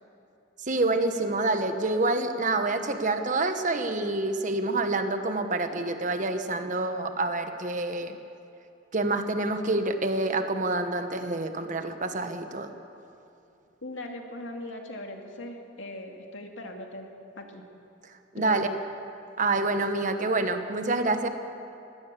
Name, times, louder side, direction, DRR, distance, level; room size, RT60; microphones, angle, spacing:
voice 1, 0.7-8.1 8.9-12.7 18.3-18.7 19.4-21.3, right 2 dB, 40° right, 7 dB, 1.3 m, -27 dB
voice 2, 13.8-17.1 17.4-17.6 18.4-18.8, left 1 dB, 75° left, 2 dB, 2.4 m, -39 dB
22.0 x 17.0 x 7.6 m, 2.7 s
head